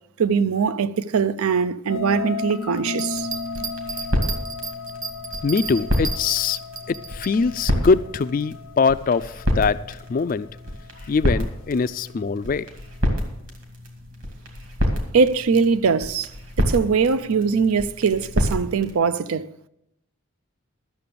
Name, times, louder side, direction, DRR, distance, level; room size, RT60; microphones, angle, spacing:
voice 1, 0.2-3.3 15.1-16.3 16.6-19.5, right 5 dB, 90° right, 0.5 m, -21 dB
sound 1, 1.9-11.2, left 4 dB, 80° left, 0.7 m, -35 dB
Bell, 2.9-7.3 7.8-7.9, right 5 dB, 40° right, 0.9 m, -34 dB
sound 2, 3.1-18.9, equal, 65° right, 2.3 m, -29 dB
voice 2, 5.4-6.6 6.9-10.5 11.1-12.7, left 4 dB, 40° left, 0.3 m, -22 dB
12.5 x 6.9 x 6.8 m
head